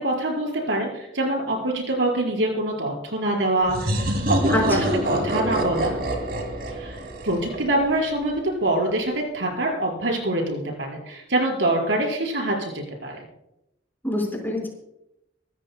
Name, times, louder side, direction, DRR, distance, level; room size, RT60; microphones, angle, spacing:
voice 1, 0.0-5.9 6.7-7.0 7.2-13.2, right 1 dB, 80° right, 0 dB, 5.0 m, -25 dB
sound 1, 3.7-8.2, equal, 60° right, 2.6 m, -26 dB
voice 2, 4.5-4.9 14.0-14.7, left 1 dB, 10° left, 0 dB, 5.0 m, -25 dB
25.0 x 13.5 x 2.2 m, 0.86 s
head